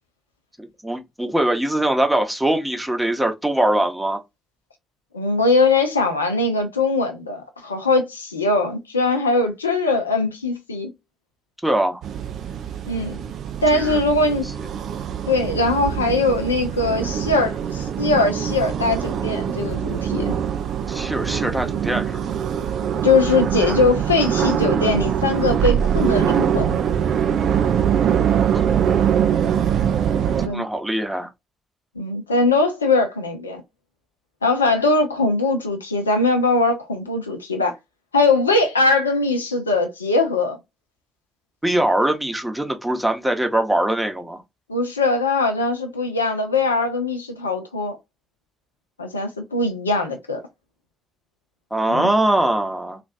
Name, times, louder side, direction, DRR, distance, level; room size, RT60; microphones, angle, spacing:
voice 1, 0.6-4.2 11.6-12.0 13.7-14.0 20.9-22.2 28.5-28.6 30.5-31.3 41.6-44.4 51.7-53.0, right 1 dB, 10° right, 0.9 m, -22 dB
voice 2, 5.1-10.9 12.9-13.3 13.6-14.5 15.3-20.4 23.0-26.8 30.4-30.6 32.0-33.6 34.4-37.7 38.1-40.6 44.7-48.0 49.0-50.4 51.9-52.1, left 3 dB, 85° left, 0.5 m, -21 dB
sound 1, 12.0-30.5, right 8 dB, 60° right, 0.4 m, -23 dB
3.1 x 2.4 x 2.5 m
figure-of-eight pair, 40°, 0 cm